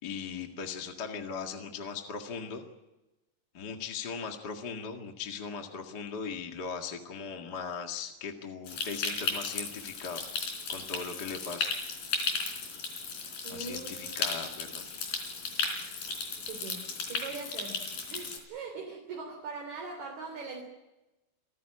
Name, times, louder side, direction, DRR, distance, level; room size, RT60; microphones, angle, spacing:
voice 1, 0.0-2.7 3.5-10.2 10.7-11.7 13.5-14.8, left 5 dB, 35° left, 3 dB, 2.0 m, -39 dB
Stream, 8.7-18.4, left 4 dB, 85° left, 5.6 m, -35 dB
voice 2, 13.4-14.5 16.4-20.6, right 4 dB, 55° right, 1 dB, 4.6 m, -42 dB
27.5 x 15.0 x 9.8 m, 1.0 s
omnidirectional pair, 3.9 m